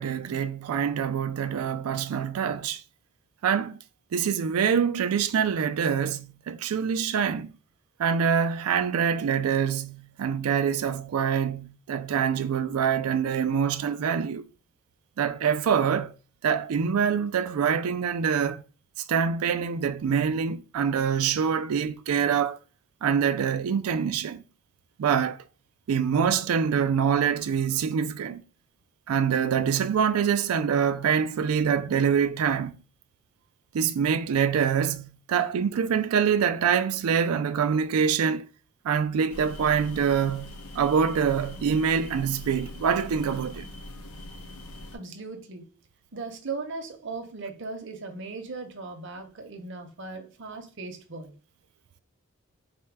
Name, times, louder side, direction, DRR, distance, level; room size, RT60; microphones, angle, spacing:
voice 1, 0.0-2.8 3.4-3.8 4.1-7.5 8.0-14.4 15.2-16.1 16.4-18.6 19.1-22.6 23.0-24.4 25.0-25.4 25.9-28.4 29.1-32.7 33.7-38.5 38.8-43.6, right 7 dB, 85° right, 0.4 m, -25 dB
sound 1, 39.3-45.0, left 1 dB, 90° left, 0.9 m, -42 dB
voice 2, 44.9-45.7 46.1-51.3, right 3 dB, 55° right, 0.7 m, -38 dB
4.3 x 2.2 x 4.6 m
head